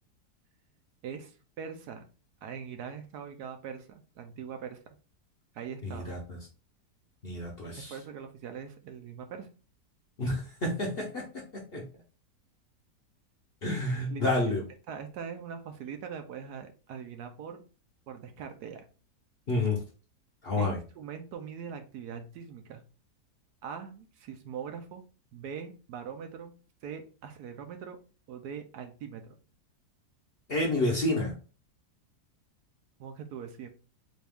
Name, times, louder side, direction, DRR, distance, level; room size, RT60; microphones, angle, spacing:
voice 1, 1.0-2.0 2.4-4.8 5.5-6.2 7.9-9.5 14.1-14.5 14.9-17.6 18.1-18.9 20.6-22.8 23.6-25.0 25.3-26.5 26.8-28.0 28.3-29.3 33.0-33.7, right 7 dB, 75° right, 6 dB, 1.1 m, -42 dB
voice 2, 5.8-6.4 7.2-7.9 10.2-11.8 13.6-14.6 19.5-19.8 20.4-20.8 30.5-31.3, left 2 dB, 45° left, -2 dB, 0.8 m, -29 dB
4.2 x 2.4 x 3.4 m, 0.36 s
omnidirectional pair, 1.8 m